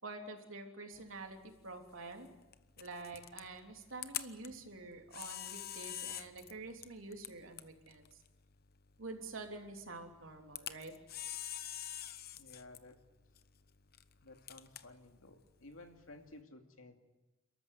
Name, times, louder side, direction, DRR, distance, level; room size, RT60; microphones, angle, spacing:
voice 1, 0.0-2.3 2.8-8.1 9.0-11.0, right 3 dB, 80° right, 3 dB, 3.3 m, -47 dB
Camera, 0.9-16.4, left 11 dB, 50° left, 1.0 m, -48 dB
voice 2, 12.3-13.0 14.2-17.0, left 2 dB, 85° left, 4 dB, 2.6 m, -55 dB
29.5 x 14.0 x 9.5 m, 1.1 s
head